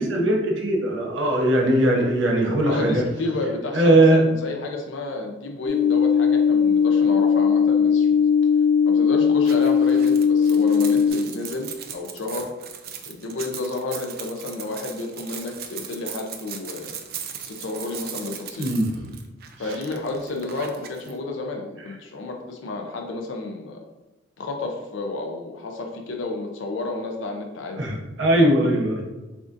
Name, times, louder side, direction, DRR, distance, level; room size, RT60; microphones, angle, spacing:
voice 1, 0.0-3.0 3.7-4.2 18.6-18.9 27.8-29.0, right 1 dB, 85° right, 0 dB, 0.9 m, -19 dB
voice 2, 2.6-8.3 8.8-12.5 13.1-16.9 17.4-18.7 19.6-23.8 24.4-27.9, left 2 dB, 85° left, 2 dB, 0.5 m, -31 dB
sound 1, 5.7-11.1, left 6 dB, 35° left, 0.5 m, -18 dB
sound 2, 9.4-21.1, right 8 dB, 55° right, 0.5 m, -38 dB
6.9 x 2.5 x 2.5 m, 1.1 s
head